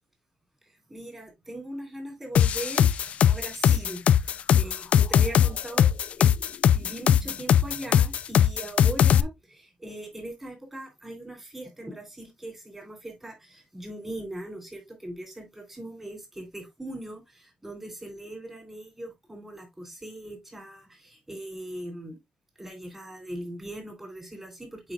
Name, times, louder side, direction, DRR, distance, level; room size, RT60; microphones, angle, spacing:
voice 1, 0.6-5.9 6.2-6.3 6.7-22.2 22.6-24.9, right 1 dB, 15° right, 3.4 m, -40 dB
sound 1, 2.4-9.2, left 9 dB, 60° left, 0.4 m, -20 dB
8.1 x 4.9 x 2.4 m
wide cardioid pair, 155°, 3 cm